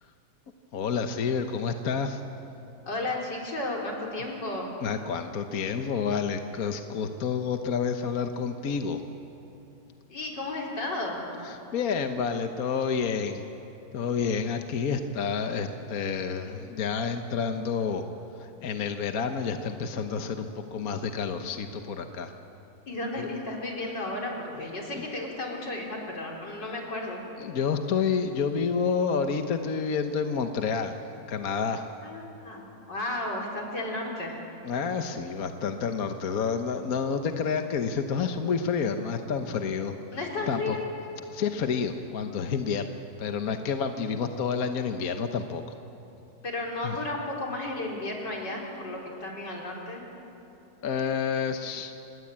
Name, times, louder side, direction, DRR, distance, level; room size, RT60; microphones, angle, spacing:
voice 1, 0.7-2.2 4.8-9.0 11.4-13.4 13.9-18.1 18.4-22.3 23.2-23.3 24.5-24.6 24.9-25.1 27.4-31.0 31.3-31.8 34.6-40.0 40.5-40.8 41.3-42.9 43.2-45.6 46.8-47.0 50.8-51.9, left 6 dB, 60° left, 6 dB, 1.4 m, -29 dB
voice 2, 2.9-4.7 10.1-11.2 22.9-27.2 32.0-32.6 32.9-34.4 40.1-40.8 46.4-50.0, left 2 dB, 80° left, -1 dB, 4.8 m, -33 dB
28.5 x 21.5 x 8.7 m, 2.9 s
omnidirectional pair, 1.9 m